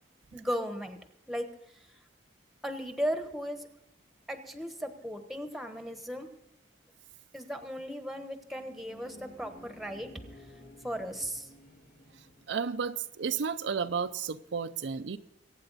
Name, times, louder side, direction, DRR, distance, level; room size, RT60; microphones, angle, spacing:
voice 1, 0.3-1.0 1.3-1.5 2.6-3.7 4.3-6.3 7.3-10.1 10.8-11.5, equal, ahead, 7 dB, 1.2 m, -36 dB
sound 1, 8.3-12.9, equal, 60° left, 2.5 m, -54 dB
voice 2, 12.5-15.2, right 6 dB, 80° right, 10 dB, 0.5 m, -32 dB
23.0 x 9.0 x 4.1 m, 0.82 s
head